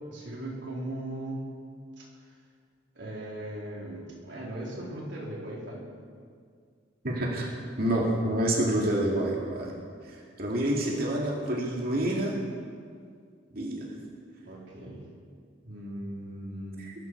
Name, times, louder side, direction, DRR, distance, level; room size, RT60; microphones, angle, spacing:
voice 1, 0.1-1.4 2.0-2.1 3.0-5.9 14.5-15.0 15.6-16.9, right 1 dB, 75° right, -3 dB, 3.9 m, -38 dB
voice 2, 7.0-7.5 7.8-9.7 10.1-12.3 13.5-13.9 16.8-16.9, right 1 dB, 55° right, -2 dB, 2.4 m, -28 dB
21.5 x 12.5 x 4.7 m, 2.1 s
head